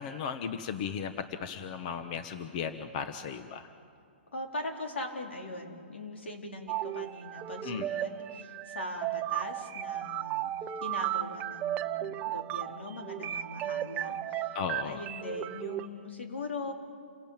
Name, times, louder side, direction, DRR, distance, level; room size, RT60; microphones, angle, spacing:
voice 1, 0.0-3.7 7.6-7.9 14.5-15.0, left 7 dB, 40° left, 9 dB, 1.1 m, -36 dB
voice 2, 4.3-10.5 10.8-14.6 14.8-16.7, left 2 dB, 85° left, 2 dB, 4.2 m, -40 dB
sound 1, 6.7-15.9, right 12 dB, 25° right, 0.7 m, -35 dB
28.5 x 17.5 x 9.0 m, 2.4 s
hypercardioid pair, 145°, 6 cm